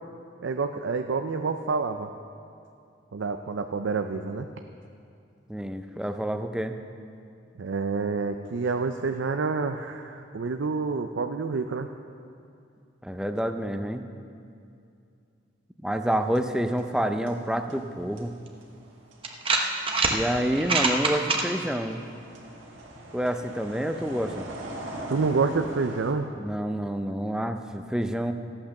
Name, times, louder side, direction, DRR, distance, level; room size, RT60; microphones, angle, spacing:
voice 1, 0.4-2.1 3.1-4.5 7.6-11.9 25.1-26.3, right 4 dB, 70° right, 6 dB, 0.5 m, -28 dB
voice 2, 5.5-6.8 13.0-14.0 15.8-18.3 20.0-22.0 23.1-24.5 26.4-28.3, equal, 5° right, 7 dB, 0.5 m, -28 dB
sound 1, 16.1-17.0 17.3-26.1, right 1 dB, 85° right, 1.9 m, -42 dB
sound 2, 18.5-18.6 19.2-20.2 20.5-21.4, right 3 dB, 30° right, 1.0 m, -24 dB
14.0 x 8.7 x 6.5 m, 2.5 s
head